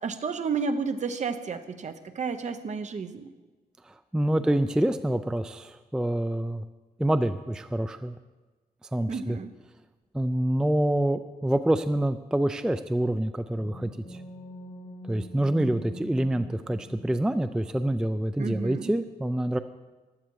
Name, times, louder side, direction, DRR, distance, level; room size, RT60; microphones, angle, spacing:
voice 1, 0.0-3.3 4.4-4.6 9.1-9.5 18.4-18.9, right 5 dB, 45° right, 9 dB, 0.8 m, -32 dB
voice 2, 3.9-6.6 7.0-8.2 8.9-9.4 10.1-14.2 15.1-19.6, right 1 dB, 5° right, 11 dB, 0.3 m, -26 dB
sound 1, 13.2-17.6, right 1 dB, 50° left, 2.4 m, -44 dB
15.5 x 11.5 x 4.7 m, 1.3 s
wide cardioid pair, 175°, 16 cm